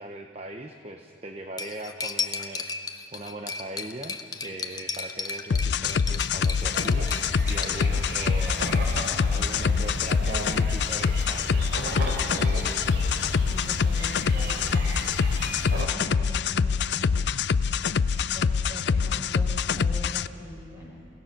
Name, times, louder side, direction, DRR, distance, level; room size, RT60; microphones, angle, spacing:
voice 1, 0.0-2.6 3.1-8.6 9.3-11.7, right 1 dB, 35° right, 4 dB, 0.8 m, -40 dB
Cutlery silverware, 1.6-7.8, left 4 dB, 20° left, 0.8 m, -34 dB
sound 1, 5.5-20.3, left 6 dB, 65° left, 0.4 m, -25 dB
sound 2, 5.9-15.9, right 1 dB, 60° right, 3.4 m, -34 dB
voice 2, 7.8-8.9 9.3-9.9 13.2-14.9 15.7-17.3 18.2-21.0, left 1 dB, 15° right, -5 dB, 6.6 m, -42 dB
29.0 x 17.0 x 5.9 m, 2.5 s
head